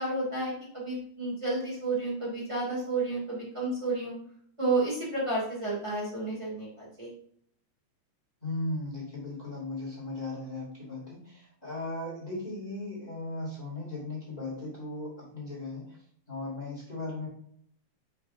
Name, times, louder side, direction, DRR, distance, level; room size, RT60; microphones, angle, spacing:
voice 1, 0.0-4.1 4.6-7.1, right 2 dB, 20° right, -6 dB, 0.8 m, -31 dB
voice 2, 8.4-16.0 16.3-17.3, left 2 dB, 15° left, -5 dB, 1.3 m, -37 dB
7.7 x 5.9 x 2.6 m, 0.66 s
omnidirectional pair, 5.3 m